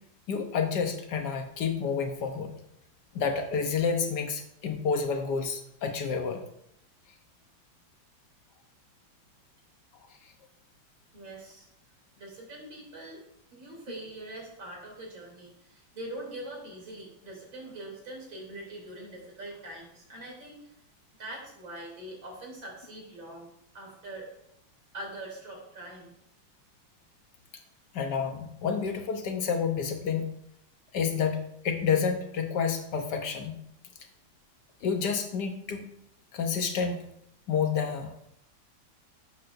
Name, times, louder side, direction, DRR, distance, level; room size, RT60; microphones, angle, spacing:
voice 1, 0.3-2.5 3.1-6.4 27.9-30.4 30.9-33.6 34.8-35.9 36.3-37.0 37.5-38.1, left 6 dB, 65° left, 5 dB, 1.4 m, -29 dB
voice 2, 11.1-11.7 12.1-13.2 13.5-20.6 21.2-24.3 24.9-26.1, right 1 dB, 75° right, -2 dB, 3.8 m, -43 dB
12.0 x 7.6 x 2.6 m, 0.75 s
omnidirectional pair, 2.1 m